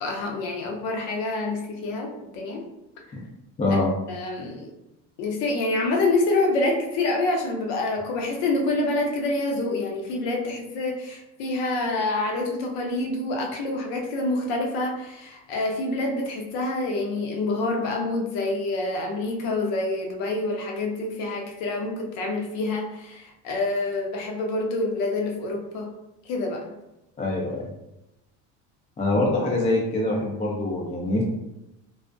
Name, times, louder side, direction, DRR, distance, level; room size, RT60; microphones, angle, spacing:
voice 1, 0.0-2.6 3.7-3.8 4.1-4.7 5.2-25.9 26.3-26.7, left 2 dB, 70° left, 1 dB, 0.7 m, -27 dB
voice 2, 3.6-3.9 27.2-27.6 29.0-31.2, left 2 dB, 20° left, -2 dB, 0.4 m, -24 dB
2.4 x 2.1 x 2.5 m, 0.90 s
supercardioid pair, 100°, 38 cm